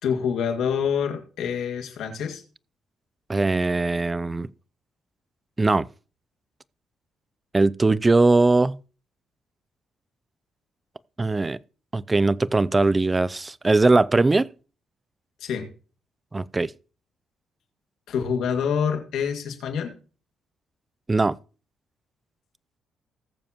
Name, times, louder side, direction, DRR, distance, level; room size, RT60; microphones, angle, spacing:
voice 1, 0.0-2.4 15.4-15.7 18.1-20.0, left 7 dB, 75° left, 2.1 m, -26 dB
voice 2, 3.3-4.5 5.6-5.9 7.5-8.8 11.2-11.6 11.9-14.5 16.3-16.7 21.1-21.4, right 3 dB, 20° right, 0.4 m, -20 dB
19.0 x 7.2 x 3.0 m
cardioid pair, 90°, 0 cm